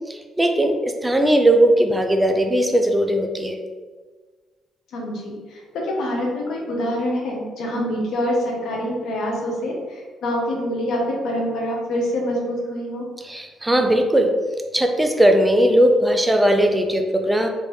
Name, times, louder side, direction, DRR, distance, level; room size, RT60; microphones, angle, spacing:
voice 1, 0.1-3.6 13.2-14.3 14.7-17.5, right 1 dB, 10° right, 4 dB, 0.4 m, -18 dB
voice 2, 4.9-13.0, equal, 80° left, -2 dB, 0.9 m, -25 dB
3.3 x 2.5 x 3.2 m, 1.4 s
cardioid pair, 90°, 0 cm